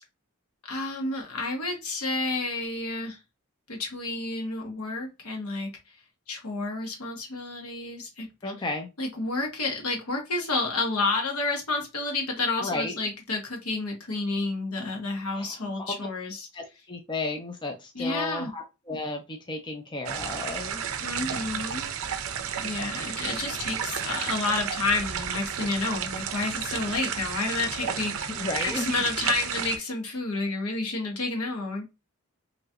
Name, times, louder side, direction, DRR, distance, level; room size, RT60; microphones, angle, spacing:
voice 1, 0.7-3.2 3.7-5.7 6.3-8.3 9.0-16.4 17.9-18.5 21.0-21.9 22.6-28.4 28.7-31.9, left 3 dB, 80° left, 1 dB, 1.2 m, -30 dB
voice 2, 8.4-8.9 12.6-13.0 15.3-16.0 16.5-20.8 27.8-28.9, left 2 dB, 20° left, 4 dB, 0.5 m, -33 dB
sound 1, 20.1-29.8, right 8 dB, 65° right, 0.5 m, -32 dB
3.0 x 2.7 x 2.3 m, 0.25 s
head